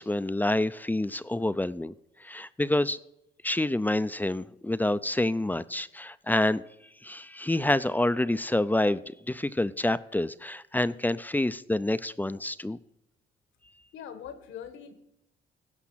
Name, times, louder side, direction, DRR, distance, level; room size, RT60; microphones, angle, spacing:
voice 1, 0.0-1.9 2.2-3.0 3.4-6.6 7.0-12.8, left 1 dB, 10° left, 15 dB, 0.4 m, -27 dB
voice 2, 13.9-14.9, left 8 dB, 75° left, 9 dB, 1.5 m, -42 dB
16.0 x 6.0 x 5.7 m, 0.81 s
cardioid pair, 90°, 20 cm